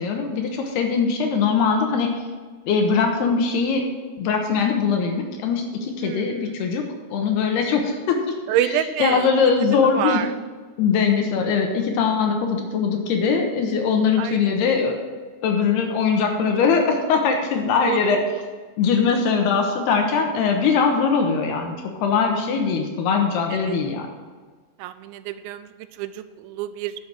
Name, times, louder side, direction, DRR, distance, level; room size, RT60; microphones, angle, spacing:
voice 1, 0.0-2.1 2.7-3.8 4.2-6.8 7.1-8.2 9.0-10.2 10.8-15.0 15.4-18.2 18.8-21.8 22.0-24.1, left 5 dB, 70° left, 3 dB, 2.9 m, -21 dB
voice 2, 6.0-6.5 8.5-9.3 9.8-10.3 14.2-14.4 17.8-18.0 18.2-18.4 23.5-23.8 24.8-26.9, right 11 dB, 85° right, 12 dB, 2.9 m, -27 dB
10.0 x 7.8 x 6.1 m, 1.4 s
omnidirectional pair, 5.3 m